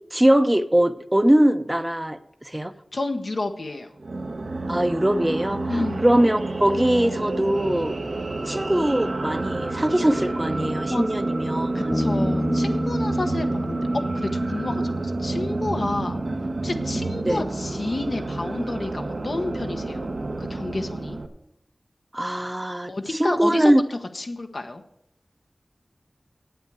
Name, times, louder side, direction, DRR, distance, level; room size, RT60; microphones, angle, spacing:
voice 1, 0.1-2.2 2.5-2.7 4.7-7.9 8.5-12.0 17.2-17.4 22.1-22.9 23.2-23.8, right 1 dB, 20° right, 10 dB, 0.7 m, -21 dB
voice 2, 2.9-3.9 5.7-6.1 10.9-11.0 11.7-16.2 16.6-20.1 20.4-21.2 22.9-24.8, left 2 dB, 75° left, 5 dB, 1.1 m, -30 dB
sound 1, 4.0-21.3, right 2 dB, 80° right, 1.0 m, -29 dB
Bass guitar, 11.9-15.4, left 1 dB, 20° left, 0.4 m, -29 dB
8.4 x 8.0 x 7.9 m, 0.77 s
wide cardioid pair, 40°, 0 cm